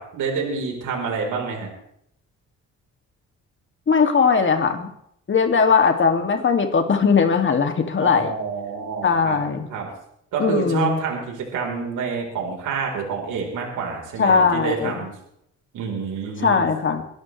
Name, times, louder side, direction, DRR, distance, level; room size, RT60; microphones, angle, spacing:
voice 1, 0.0-1.7 8.0-9.4 9.7-9.9 10.3-15.1 15.7-16.6, right 5 dB, 80° right, 1 dB, 4.1 m, -27 dB
voice 2, 3.9-4.9 5.3-8.3 9.0-9.7 10.4-11.0 14.2-15.0 16.4-17.0, left 5 dB, 40° left, 5 dB, 2.3 m, -19 dB
23.5 x 12.5 x 3.3 m, 0.73 s
cardioid pair, 90°, 30 cm